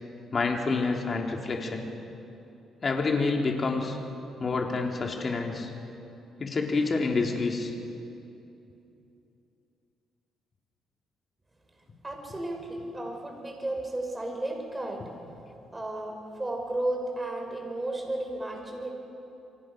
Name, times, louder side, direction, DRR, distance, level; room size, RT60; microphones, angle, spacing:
voice 1, 0.3-1.9 2.8-4.0 4.4-5.7 6.4-7.7, left 3 dB, 40° left, 1 dB, 3.6 m, -28 dB
voice 2, 12.0-15.0 15.7-18.9, right 1 dB, 15° right, 2 dB, 5.8 m, -33 dB
29.0 x 24.0 x 6.5 m, 2.8 s
cardioid pair, 90°, 0 cm